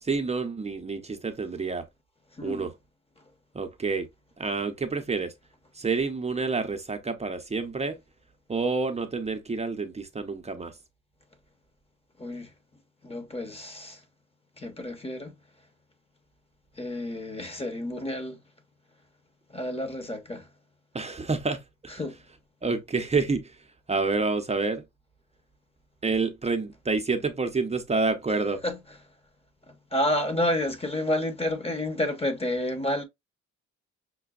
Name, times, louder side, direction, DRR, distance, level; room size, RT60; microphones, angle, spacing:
voice 1, 0.0-1.8 2.4-2.7 3.5-4.1 4.4-5.3 5.7-8.0 8.5-10.7 20.9-22.0 22.6-23.6 23.9-24.8 26.0-28.6, right 4 dB, 20° right, 0.6 m, -28 dB
voice 2, 2.4-2.7 12.2-12.5 13.0-14.0 14.6-15.3 16.8-18.4 19.5-20.5 22.0-22.2 28.6-28.8 29.9-33.0, left 1 dB, 20° left, 0.9 m, -30 dB
5.9 x 2.2 x 2.3 m
cardioid pair, 90°, 30 cm